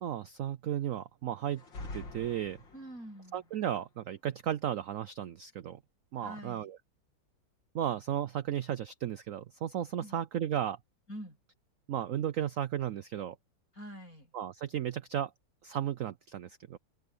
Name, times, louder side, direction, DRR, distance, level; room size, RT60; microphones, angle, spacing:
voice 1, 0.0-1.6 1.9-2.6 3.3-5.8 6.1-6.8 7.7-10.8 11.9-13.4 14.3-15.3 15.6-16.8, right 10 dB, 70° right, 0.7 m, -34 dB
sound 1, 1.5-3.2, left 2 dB, 80° left, 3.6 m, -45 dB
voice 2, 2.7-3.4 6.2-6.7 10.0-10.2 11.1-11.4 13.7-14.3, equal, 50° left, 8.4 m, -45 dB
omnidirectional pair, 2.0 m